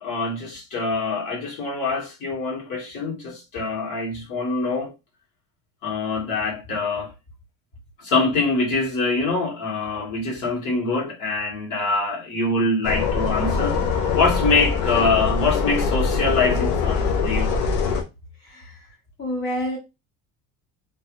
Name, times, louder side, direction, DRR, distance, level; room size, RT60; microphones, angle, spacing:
voice 1, 0.0-4.9 5.8-7.1 8.0-17.5, left 3 dB, 55° left, 1.8 m, -24 dB
sound 1, 12.8-18.0, left 5 dB, 75° left, 0.9 m, -23 dB
voice 2, 18.4-18.8 19.2-19.8, equal, 30° left, 0.9 m, -28 dB
3.1 x 2.5 x 3.1 m
cardioid pair, 135°, 38 cm